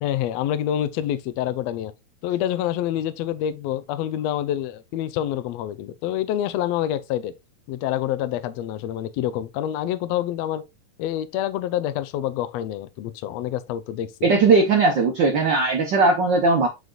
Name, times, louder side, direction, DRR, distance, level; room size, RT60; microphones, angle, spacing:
voice 1, 0.0-1.9 2.2-7.3 7.7-10.6 11.0-14.3, left 11 dB, 80° left, 1.6 m, -27 dB
voice 2, 14.2-16.7, right 3 dB, 90° right, 0.9 m, -18 dB
8.0 x 4.9 x 2.4 m
omnidirectional pair, 3.5 m